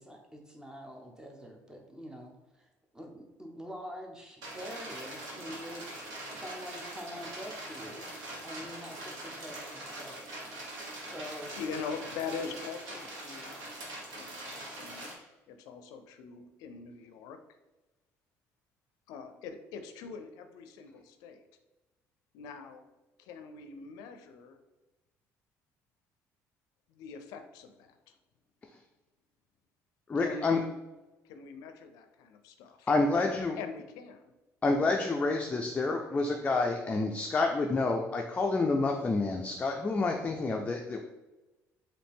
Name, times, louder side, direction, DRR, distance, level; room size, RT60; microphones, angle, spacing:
voice 1, 0.0-2.7 2.9-6.2 6.4-8.1 8.4-10.4 11.1-11.6, equal, 10° right, 2 dB, 0.8 m, -45 dB
sound 1, 4.4-15.1, right 1 dB, 80° right, 1.3 m, -43 dB
voice 2, 11.2-13.6 14.1-15.2 15.5-17.4 19.1-21.4 22.3-22.8 23.2-24.6 26.9-28.1 30.2-30.7 31.2-32.9 33.1-34.2, left 5 dB, 85° left, 7 dB, 0.4 m, -43 dB
voice 3, 30.1-30.6 32.9-33.6 34.6-41.0, left 3 dB, 20° left, 2 dB, 0.4 m, -28 dB
4.1 x 2.7 x 3.5 m, 1.1 s
cardioid pair, 100°, 6 cm